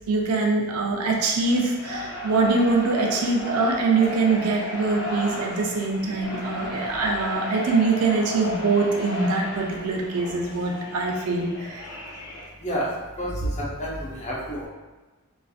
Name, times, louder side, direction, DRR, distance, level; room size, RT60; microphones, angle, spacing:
voice 1, 0.1-11.8, right 3 dB, 85° right, 0 dB, 0.4 m, -23 dB
sound 1, 1.4-12.5, left 1 dB, 85° left, 0.5 m, -35 dB
voice 2, 13.6-14.7, equal, 30° left, -5 dB, 0.6 m, -29 dB
2.5 x 2.4 x 2.4 m, 1.2 s
head